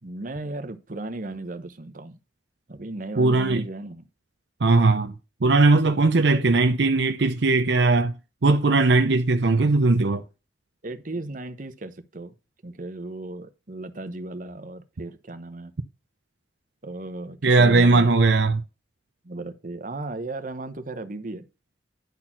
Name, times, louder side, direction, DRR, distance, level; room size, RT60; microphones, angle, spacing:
voice 1, 0.0-2.2 2.7-4.1 10.8-12.3 12.6-15.7 16.8-18.1 19.2-21.4, right 2 dB, 50° right, 1.0 m, -36 dB
voice 2, 3.2-3.6 4.6-5.1 5.4-8.2 8.4-10.2 17.4-18.6, right 3 dB, 75° right, 0.6 m, -19 dB
10.5 x 4.3 x 5.9 m
head